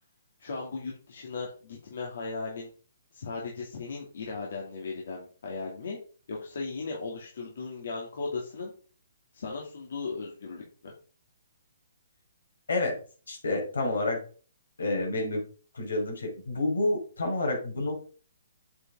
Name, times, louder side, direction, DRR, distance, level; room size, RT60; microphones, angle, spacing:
voice 1, 0.4-2.7 3.1-6.0 6.3-8.7 9.3-10.9, left 4 dB, 65° left, -2 dB, 2.6 m, -37 dB
voice 2, 13.3-14.2 14.8-15.4 15.7-18.0, left 2 dB, 85° left, 1 dB, 5.0 m, -29 dB
8.1 x 7.9 x 3.8 m, 0.40 s
hypercardioid pair, 145°, 0 cm